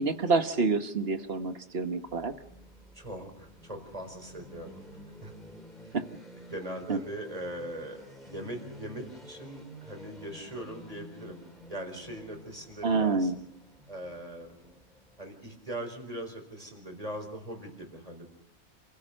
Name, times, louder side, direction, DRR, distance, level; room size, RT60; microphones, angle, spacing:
voice 1, 0.0-2.3 5.9-6.0 6.9-7.0 12.8-13.4, right 3 dB, 65° right, 8 dB, 1.6 m, -27 dB
sound 1, 1.9-15.8, left 1 dB, ahead, 4.1 m, -51 dB
voice 2, 2.9-4.8 5.2-5.3 5.8-5.9 6.3-8.0 8.2-11.4 11.7-13.3 13.9-14.7 15.2-18.3, right 1 dB, 35° right, 4 dB, 4.7 m, -40 dB
28.0 x 16.0 x 6.6 m, 0.81 s
omnidirectional pair, 1.1 m